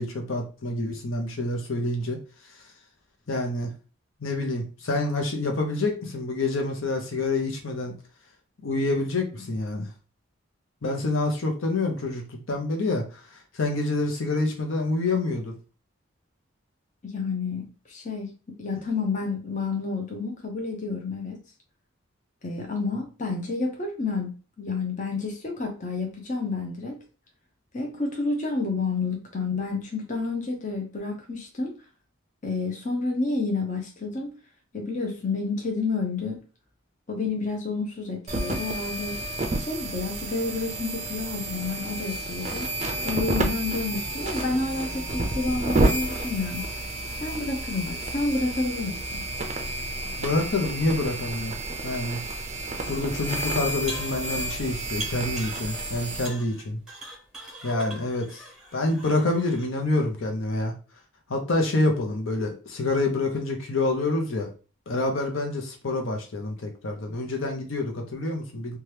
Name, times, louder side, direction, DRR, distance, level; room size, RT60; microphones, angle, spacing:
voice 1, 0.0-2.2 3.3-3.7 4.2-7.9 8.6-9.9 10.8-13.2 13.5-15.5 50.2-51.5 51.8-52.2 52.9-56.8 57.6-58.4 58.7-60.7 61.3-64.5 64.9-68.8, left 2 dB, 75° left, 3 dB, 0.7 m, -27 dB
voice 2, 17.0-21.4 22.4-24.3 24.6-27.0 27.7-31.8 32.4-34.3 34.7-36.4 37.1-39.2 39.6-42.7 43.0-46.6 47.2-49.2, left 3 dB, 35° left, 2 dB, 0.6 m, -30 dB
sound 1, 38.3-56.3, right 2 dB, 30° right, 0.4 m, -30 dB
sound 2, 53.9-54.6 55.0-55.9 56.2-59.7, right 1 dB, 5° right, 0.8 m, -41 dB
2.8 x 2.3 x 3.3 m, 0.35 s
head